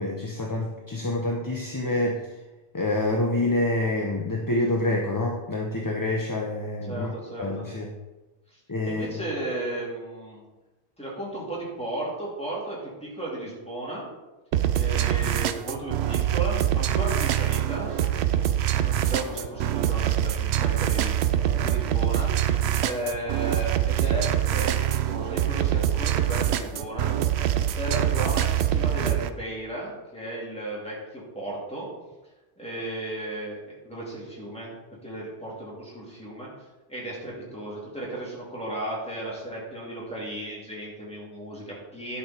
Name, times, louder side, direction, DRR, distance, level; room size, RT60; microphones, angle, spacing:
voice 1, 0.0-2.2 2.7-7.1 7.4-7.9 8.7-9.1, left 2 dB, 20° left, 0 dB, 0.7 m, -27 dB
voice 2, 6.9-7.7 8.5-10.4 11.0-14.1 14.7-18.1 18.5-21.1 21.6-22.5 22.8-31.9 32.6-34.7 35.0-36.5 36.9-42.2, right 1 dB, 5° left, -6 dB, 3.1 m, -35 dB
sound 1, 14.5-29.3, right 11 dB, 70° right, 0.8 m, -24 dB
11.0 x 5.8 x 4.4 m, 1.1 s
omnidirectional pair, 1.1 m